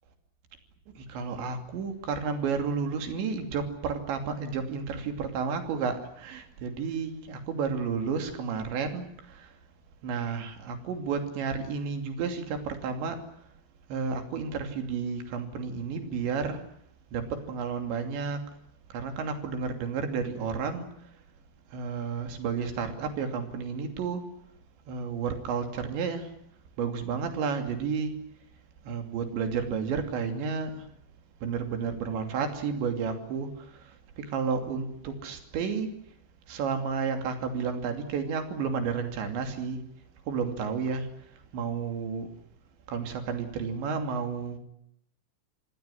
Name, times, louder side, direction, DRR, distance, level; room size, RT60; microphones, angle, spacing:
voice 1, 1.0-9.5 10.0-13.3 13.9-16.6 17.1-18.4 18.9-20.9 21.7-24.2 24.9-26.4 26.8-28.1 28.8-30.9 31.4-36.0 36.5-39.8 40.3-41.1 41.5-42.3 42.9-44.6, right 5 dB, 80° right, 6 dB, 5.0 m, -31 dB
26.5 x 19.0 x 10.0 m, 0.73 s
omnidirectional pair, 5.0 m